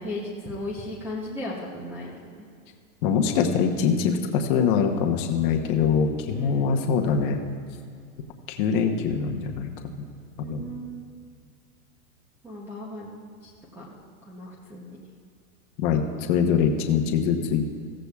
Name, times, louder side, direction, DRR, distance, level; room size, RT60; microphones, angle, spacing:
voice 1, 0.0-2.5 6.3-6.7 10.4-11.0 12.4-13.1 13.4-13.9 14.2-15.0, left 1 dB, 5° right, -4 dB, 0.6 m, -36 dB
voice 2, 3.0-7.4 8.5-9.7 10.0-10.1 10.5-10.7 15.8-17.7, left 6 dB, 35° left, 3 dB, 0.9 m, -23 dB
15.5 x 15.0 x 2.3 m, 2.2 s
supercardioid pair, 160°, 43 cm